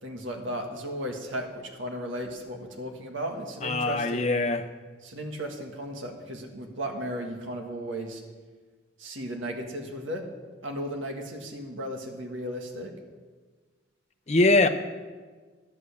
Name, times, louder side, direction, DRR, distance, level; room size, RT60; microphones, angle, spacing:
voice 1, 0.0-4.3 5.0-8.2 9.0-10.2 10.6-12.9, equal, 80° right, 3 dB, 1.6 m, -35 dB
voice 2, 3.6-4.7 14.3-14.7, left 2 dB, 35° left, 7 dB, 0.7 m, -22 dB
11.0 x 8.5 x 7.1 m, 1.4 s
head